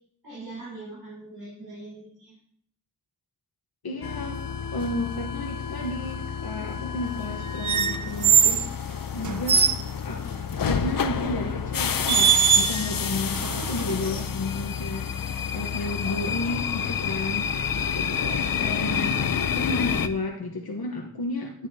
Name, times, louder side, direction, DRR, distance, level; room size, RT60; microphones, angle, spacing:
voice 1, 0.2-2.3 6.6-7.0, right 2 dB, 80° right, -9 dB, 4.4 m, -42 dB
voice 2, 3.8-4.4 4.7-9.7 10.0-10.2 10.6-18.4 18.6-19.2 19.5-21.7, left 2 dB, 85° left, 0 dB, 1.1 m, -32 dB
sound 1, 4.0-20.1, left 7 dB, 65° left, 0.6 m, -29 dB
sound 2, 7.6-8.7 9.2-9.8 11.2-11.4 12.1-12.9 13.3-14.2, right 7 dB, 55° right, 0.7 m, -21 dB
9.9 x 9.4 x 2.8 m, 0.65 s
wide cardioid pair, 50°, 36 cm